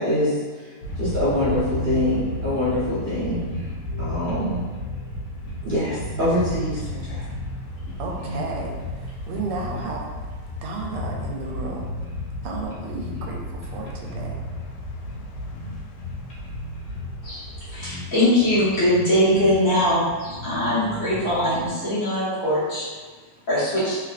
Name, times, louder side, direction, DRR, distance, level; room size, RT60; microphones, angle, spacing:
voice 1, 0.0-3.4 3.9-4.8 5.6-7.3, left 1 dB, 75° right, -13 dB, 0.4 m, -25 dB
sound 1, 0.8-17.9, left 1 dB, 85° left, 1.5 m, -34 dB
sound 2, 2.5-2.8 3.1-3.2 3.4-5.0 5.5-7.5 7.9-9.8 10.1-10.3 10.7-12.4 12.7-13.3 13.6-14.7 15.1-17.1 17.5-17.6 17.8-18.1 18.4-21.7, left 1 dB, 65° left, 0.7 m, -36 dB
voice 2, 8.0-10.1 10.6-11.9 12.4-14.4, right 3 dB, 90° right, 0 dB, 1.5 m, -33 dB
voice 3, 17.2-22.9 23.5-24.0, left 1 dB, 45° left, -12 dB, 1.3 m, -22 dB
3.3 x 3.0 x 2.4 m, 1.4 s
omnidirectional pair, 2.4 m